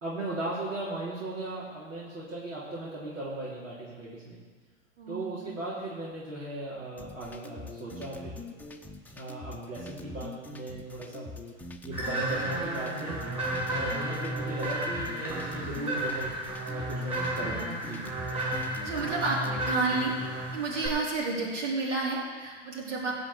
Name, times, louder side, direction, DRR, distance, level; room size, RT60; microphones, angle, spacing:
voice 1, 0.0-4.4 5.1-8.4 9.1-11.3 11.8-13.2 13.7-16.3 16.7-18.1, right 2 dB, 85° right, -8 dB, 3.5 m, -37 dB
voice 2, 5.0-5.5 18.8-20.2 20.5-23.1, right 3 dB, 70° right, -4 dB, 4.4 m, -31 dB
sound 1, 7.0-19.9, left 3 dB, 5° left, 0.7 m, -43 dB
sound 2, 11.9-20.9, right 1 dB, 15° right, 4.6 m, -33 dB
15.5 x 5.2 x 8.1 m, 1.5 s
hypercardioid pair, 105°, 37 cm